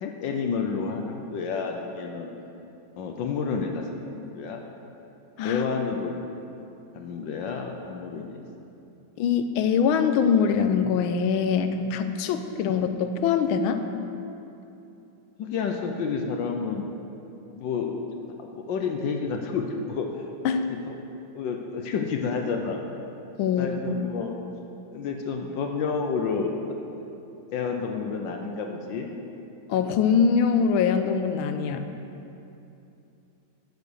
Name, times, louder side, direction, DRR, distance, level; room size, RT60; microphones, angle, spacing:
voice 1, 0.0-2.3 3.0-4.6 5.4-6.2 6.9-8.4 12.6-12.8 15.4-16.8 17.5-18.0 18.4-20.2 20.9-21.0 21.3-22.8 23.5-24.4 24.9-26.6 27.5-29.1, left 5 dB, 75° left, 3 dB, 1.4 m, -30 dB
voice 2, 9.2-13.9 20.4-20.7 23.4-24.1 29.7-31.9, left 6 dB, 90° left, 8 dB, 1.5 m, -23 dB
10.0 x 7.1 x 6.3 m, 2.9 s
omnidirectional pair, 2.2 m